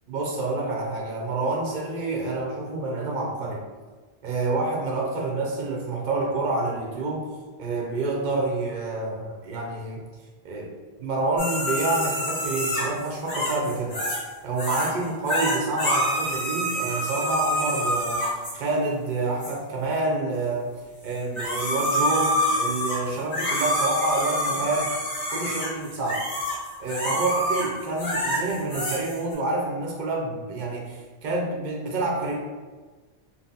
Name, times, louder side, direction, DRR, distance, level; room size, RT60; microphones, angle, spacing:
voice 1, 0.1-3.6 4.2-7.3 7.6-10.0 10.4-10.7 11.0-14.0 14.4-20.7 21.0-24.9 25.3-26.2 26.8-32.4, right 2 dB, 55° right, -1 dB, 0.6 m, -28 dB
sound 1, 11.4-14.3 14.6-14.9 15.2-18.6 19.4-19.5 21.1-29.3, equal, 35° left, 1.4 m, -27 dB
3.7 x 2.0 x 2.6 m, 1.3 s
omnidirectional pair, 1.1 m